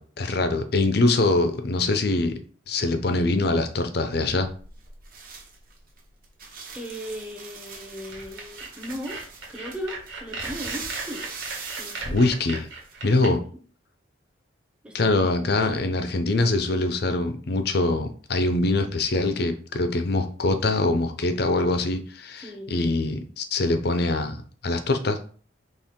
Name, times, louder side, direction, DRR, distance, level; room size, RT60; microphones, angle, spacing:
voice 1, 0.0-2.4 2.7-4.5 12.1-12.7 13.0-13.4 14.9-24.4 24.6-25.2, left 2 dB, 50° left, 0.5 m, -23 dB
sound 1, 4.1-12.9, right 4 dB, 45° right, 1.0 m, -41 dB
voice 2, 6.7-11.3 11.8-12.3 13.4-13.6 14.8-15.1 15.6-15.8 22.4-22.7, equal, 5° right, 0.7 m, -37 dB
sound 2, 8.1-13.3, right 3 dB, 75° right, 1.4 m, -36 dB
4.4 x 3.0 x 3.6 m
head